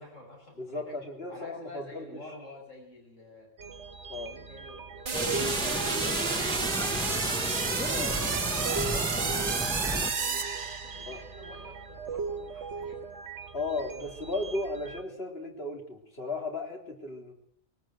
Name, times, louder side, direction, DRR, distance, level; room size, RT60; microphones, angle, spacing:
voice 1, 0.0-0.9 1.3-3.5 4.1-5.2 5.7-7.5 8.0-8.5 9.1-10.5 10.8-13.0, left 1 dB, 85° left, 1 dB, 6.0 m, -48 dB
voice 2, 0.6-2.2 4.1-4.3 7.9-8.2 8.9-9.1 11.1-11.2 13.5-17.3, left 2 dB, 50° left, 2 dB, 4.0 m, -35 dB
sound 1, 3.6-15.0, right 4 dB, 70° right, 1.5 m, -40 dB
sound 2, 5.1-10.1, equal, 5° left, 1.2 m, -33 dB
sound 3, 5.1-11.3, right 5 dB, 45° right, 1.2 m, -31 dB
21.5 x 19.0 x 7.9 m, 0.65 s
omnidirectional pair, 1.3 m